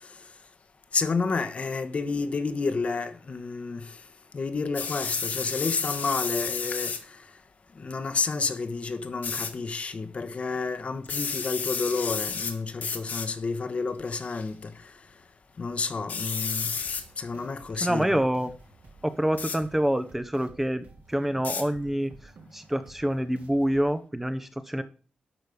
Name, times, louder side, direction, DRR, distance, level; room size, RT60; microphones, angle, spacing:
voice 1, 0.9-4.0 4.3-7.2 7.7-14.9 15.6-16.8 17.2-18.1, left 4 dB, 45° left, 1.2 m, -30 dB
sound 1, 4.7-7.0 9.2-9.5 11.0-12.5 12.8-13.3 14.1-14.4 16.1-17.0 19.4-19.6 21.4-21.6, left 5 dB, 65° left, 1.9 m, -31 dB
sound 2, 16.8-23.9, right 3 dB, 65° right, 2.9 m, -53 dB
voice 2, 17.8-18.5 19.0-24.8, right 1 dB, 10° right, 0.9 m, -27 dB
11.5 x 6.3 x 5.3 m
wide cardioid pair, 115°, 3 cm